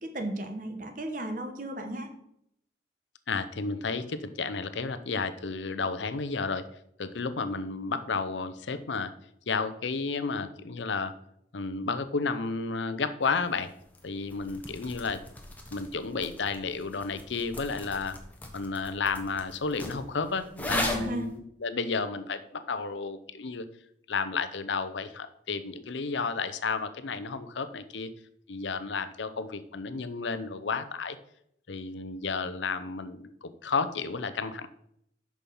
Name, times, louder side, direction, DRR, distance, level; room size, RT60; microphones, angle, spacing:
voice 1, 0.0-2.1 20.7-21.3, right 1 dB, 45° right, 5 dB, 1.0 m, -35 dB
voice 2, 3.3-6.6 7.0-9.1 9.5-11.1 11.5-13.7 14.0-15.2 15.7-18.2 18.5-23.6 24.1-28.1 28.5-31.2 31.7-34.7, left 4 dB, 90° left, 12 dB, 0.7 m, -32 dB
sound 1, 13.2-21.3, left 1 dB, 10° left, 1.0 m, -39 dB
7.0 x 6.2 x 5.5 m, 0.73 s
head